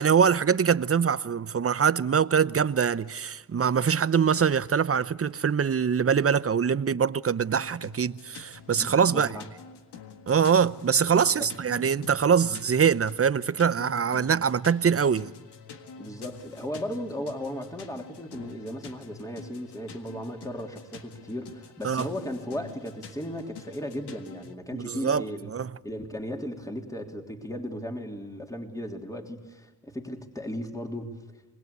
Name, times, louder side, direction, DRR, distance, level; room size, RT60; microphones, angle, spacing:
voice 1, 0.0-9.3 10.3-15.3 21.8-22.1 24.7-25.2 25.5-25.7, right 7 dB, 35° right, 0.8 m, -23 dB
sound 1, 7.6-24.5, left 5 dB, 80° left, 1.8 m, -47 dB
voice 2, 8.8-9.5 11.2-11.5 16.0-25.5 25.8-31.2, equal, 10° left, 3.2 m, -36 dB
26.5 x 20.5 x 8.3 m
cardioid pair, 60°, 39 cm